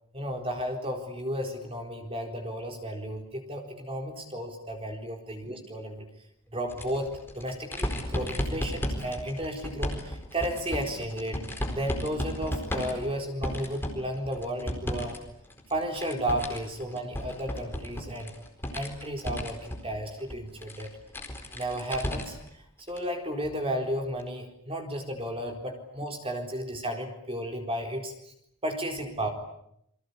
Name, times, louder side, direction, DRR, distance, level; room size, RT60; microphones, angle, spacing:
voice 1, 0.1-6.1 6.5-15.2 15.7-18.3 18.7-20.9 21.5-28.1 28.6-29.3, equal, 25° right, 3 dB, 4.2 m, -33 dB
sound 1, 6.7-15.2 15.5-22.5 22.9-23.0 24.2-24.3, equal, 10° left, 4.3 m, -35 dB
29.0 x 22.5 x 8.5 m, 0.75 s
head